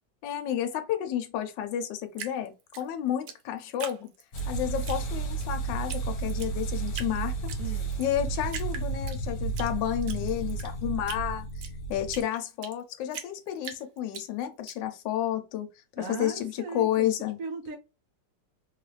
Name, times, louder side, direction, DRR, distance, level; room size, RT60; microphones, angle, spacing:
voice 1, 0.2-4.1 4.5-7.5 8.0-15.7 16.0-17.4, left 11 dB, 80° left, 1.2 m, -31 dB
Drip, 2.1-4.5 4.8-5.5 5.9-6.0 6.3-7.1 7.5-8.1 8.5-9.7 10.0-12.8 13.1-14.7, right 8 dB, 90° right, 1.3 m, -41 dB
sound 1, 4.3-12.2, right 4 dB, 60° left, 1.2 m, -32 dB
voice 2, 7.6-7.9 16.0-17.1 17.4-17.8, right 5 dB, 70° right, 1.0 m, -38 dB
3.2 x 2.4 x 3.1 m
omnidirectional pair, 2.0 m